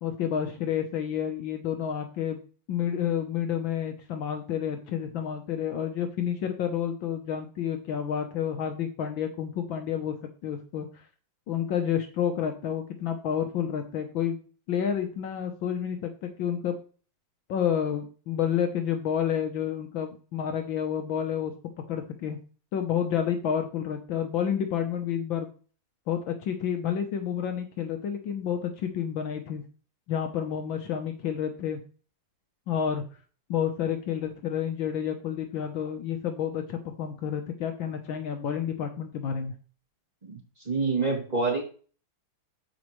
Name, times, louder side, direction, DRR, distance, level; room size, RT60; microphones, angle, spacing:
voice 1, 0.0-2.4 2.7-10.2 10.4-11.0 11.5-14.4 14.7-16.8 17.5-21.5 21.9-22.4 22.7-25.5 26.1-29.6 30.1-31.8 32.7-33.0 33.5-39.5, left 8 dB, 65° left, 5 dB, 1.5 m, -30 dB
voice 2, 40.6-41.6, right 4 dB, 20° right, -2 dB, 2.8 m, -26 dB
14.0 x 5.2 x 3.1 m, 0.39 s
omnidirectional pair, 2.4 m